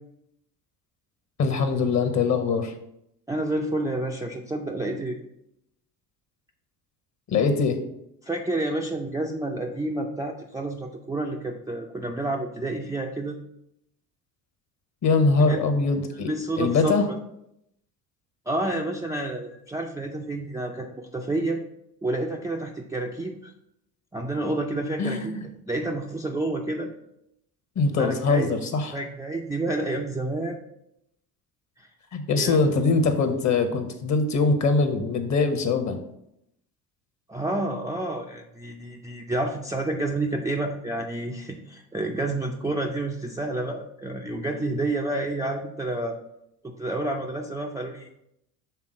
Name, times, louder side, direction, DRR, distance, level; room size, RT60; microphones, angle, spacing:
voice 1, 1.4-2.7 7.3-7.8 15.0-16.3 16.6-17.1 25.0-25.4 27.7-29.0 32.1-36.0, left 4 dB, 35° left, 7 dB, 1.1 m, -22 dB
voice 2, 3.3-5.2 8.2-13.4 15.4-15.6 16.3-17.0 18.5-21.6 22.0-23.5 24.1-26.9 28.0-28.5 28.9-30.6 31.8-31.9 32.3-32.7 37.3-46.2 46.6-48.1, right 2 dB, 5° right, 0 dB, 0.5 m, -29 dB
5.8 x 3.6 x 4.9 m, 0.79 s
hypercardioid pair, 65°, 48 cm